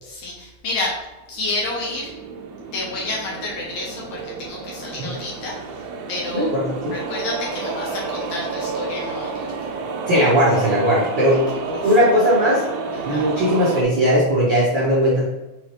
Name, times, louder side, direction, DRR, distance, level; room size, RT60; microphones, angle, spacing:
voice 1, 0.0-1.0 1.3-2.1 2.7-6.5 6.9-9.5 11.5-11.6 11.8-11.9 12.9-13.3, left 2 dB, 70° left, -3 dB, 1.8 m, -30 dB
sound 1, 1.4-13.8, right 4 dB, 85° right, 1.6 m, -30 dB
voice 2, 6.3-6.9 10.1-12.6 13.0-15.3, equal, 60° right, -9 dB, 1.2 m, -18 dB
5.6 x 3.0 x 3.1 m, 1.1 s
omnidirectional pair, 3.6 m